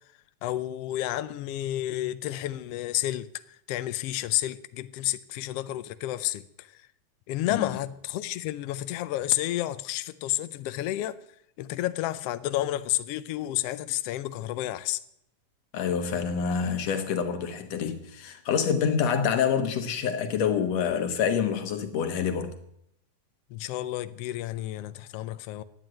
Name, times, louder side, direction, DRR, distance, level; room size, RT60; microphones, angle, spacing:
voice 1, 0.4-6.9 7.3-15.0 23.5-25.6, left 14 dB, 80° left, 1.4 m, -31 dB
voice 2, 15.7-22.6, left 7 dB, 65° left, 2.3 m, -27 dB
11.0 x 9.1 x 8.9 m
omnidirectional pair, 3.4 m